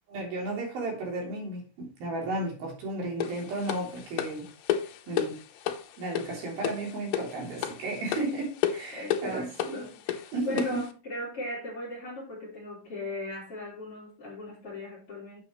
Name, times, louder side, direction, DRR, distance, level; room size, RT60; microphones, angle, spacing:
voice 1, 0.1-4.5 5.1-5.4 6.0-9.9 10.3-10.8, right 2 dB, 60° right, 5.1 m, -34 dB
sound 1, 3.2-10.9, left 10 dB, 80° left, 3.1 m, -33 dB
voice 2, 8.9-15.4, left 1 dB, 40° left, 3.0 m, -38 dB
9.1 x 7.8 x 3.2 m
omnidirectional pair, 4.8 m